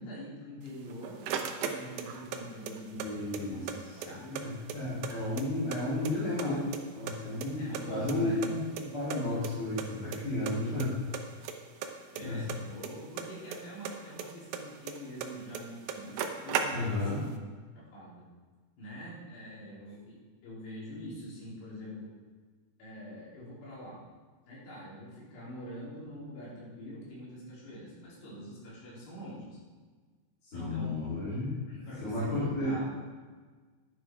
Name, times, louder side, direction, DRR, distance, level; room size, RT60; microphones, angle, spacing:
voice 1, 0.0-4.2 5.0-5.3 7.4-8.6 12.1-17.4 17.8-18.3 18.8-22.1 22.8-24.0 24.5-29.6 30.5-31.0 31.7-33.0, equal, 85° left, -8 dB, 6.3 m, -44 dB
sound 1, 0.7-2.4 2.7-3.8 4.0-4.1 4.4-5.8 6.0-6.8 7.1-8.5 8.8-8.9 9.1-9.2 9.4-9.5 9.8-10.2 10.5-10.9 11.1-13.6 13.8-15.3 15.5-15.6 15.9-17.1, right 7 dB, 75° right, 2.4 m, -36 dB
voice 2, 3.0-6.6 6.9-11.0 12.2-12.4 16.7-17.2 30.5-31.6 32.0-32.8, left 2 dB, 35° left, -11 dB, 4.0 m, -33 dB
11.0 x 10.5 x 4.8 m, 1.4 s
omnidirectional pair, 4.7 m